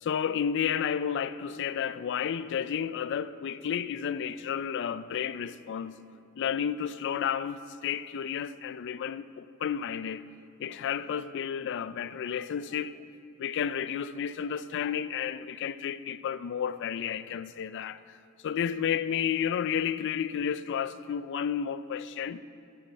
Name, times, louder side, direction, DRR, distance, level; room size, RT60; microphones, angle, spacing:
voice 1, 0.0-5.9 6.4-10.3 10.6-12.9 13.4-18.2 18.4-22.4, left 8 dB, 55° left, 0.3 m, -31 dB
11.5 x 9.2 x 4.4 m
head